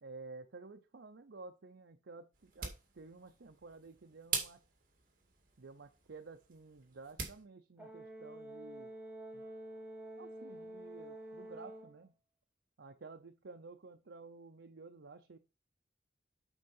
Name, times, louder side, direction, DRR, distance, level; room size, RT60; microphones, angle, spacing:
voice 1, 0.0-4.6 5.6-8.9 9.3-9.5 10.2-12.1 12.8-15.4, right 3 dB, 75° right, 5 dB, 0.6 m, -52 dB
sound 1, 2.3-7.4, right 6 dB, 50° right, 2.2 m, -44 dB
Brass instrument, 7.8-12.0, right 1 dB, 5° right, 1.3 m, -48 dB
8.1 x 4.5 x 5.4 m, 0.31 s
head